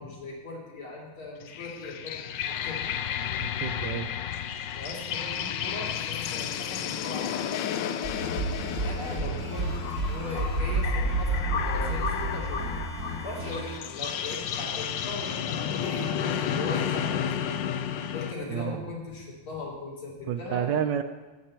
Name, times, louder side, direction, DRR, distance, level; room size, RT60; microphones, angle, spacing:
voice 1, 0.0-2.8 4.7-7.6 8.8-9.8 10.1-12.7 13.2-17.6 18.1-20.7, left 2 dB, 85° left, -4 dB, 3.8 m, -39 dB
sound 1, 1.4-18.3, left 9 dB, 70° left, 1.2 m, -32 dB
voice 2, 3.4-4.1 9.3-9.4 18.5-18.9 20.3-21.0, right 9 dB, 70° right, 9 dB, 1.1 m, -30 dB
sound 2, 8.0-13.8, right 2 dB, 45° right, 1.7 m, -30 dB
14.0 x 9.5 x 4.4 m, 1.3 s
omnidirectional pair, 2.3 m